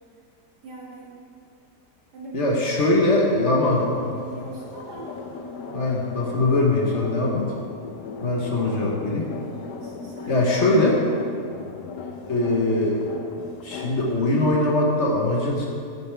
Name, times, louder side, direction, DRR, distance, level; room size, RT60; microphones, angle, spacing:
voice 1, 0.6-1.1 2.1-2.4 3.5-5.1 8.3-8.8 9.8-10.6, right 2 dB, 75° right, -5 dB, 2.3 m, -40 dB
voice 2, 2.3-4.2 5.7-7.5 8.2-9.3 10.3-11.0 12.2-13.0 13.6-15.7, left 2 dB, 50° left, -3 dB, 1.3 m, -21 dB
sound 1, 3.7-14.5, left 5 dB, 85° left, 1.3 m, -38 dB
9.1 x 9.0 x 3.4 m, 2.4 s
omnidirectional pair, 1.7 m